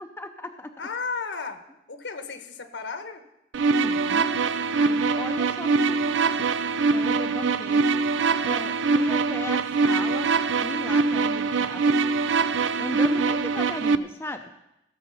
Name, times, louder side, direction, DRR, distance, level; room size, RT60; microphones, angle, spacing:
voice 1, 0.0-0.7 3.8-4.4 4.7-6.5 6.9-7.9 8.4-10.3 10.6-12.0 12.8-14.4, left 1 dB, 10° left, 5 dB, 0.6 m, -36 dB
voice 2, 0.8-1.6 1.9-3.2, left 4 dB, 70° left, 8 dB, 1.2 m, -33 dB
sound 1, 3.5-14.0, right 4 dB, 90° right, 0.5 m, -23 dB
16.0 x 7.3 x 5.6 m, 0.87 s
head